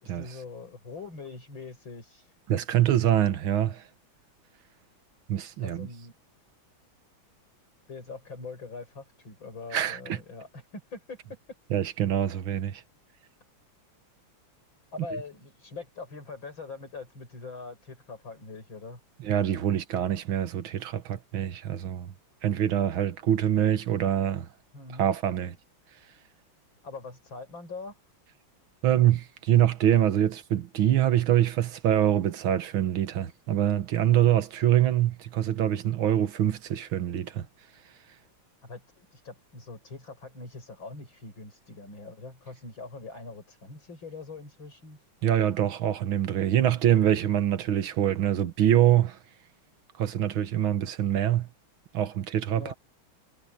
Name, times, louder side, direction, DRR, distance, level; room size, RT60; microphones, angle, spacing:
voice 1, 0.0-2.3 5.6-6.1 7.9-11.2 14.9-19.0 24.7-25.1 26.8-27.9 38.6-45.0 52.6-52.7, left 3 dB, 70° left, 7.4 m, -42 dB
voice 2, 2.5-3.8 5.3-5.9 9.7-10.2 11.7-12.8 19.2-22.1 22.4-24.5 25.0-25.6 28.8-37.5 45.2-49.2 50.0-51.5 51.9-52.7, right 11 dB, 85° right, 2.0 m, -25 dB
omnidirectional pair, 2.2 m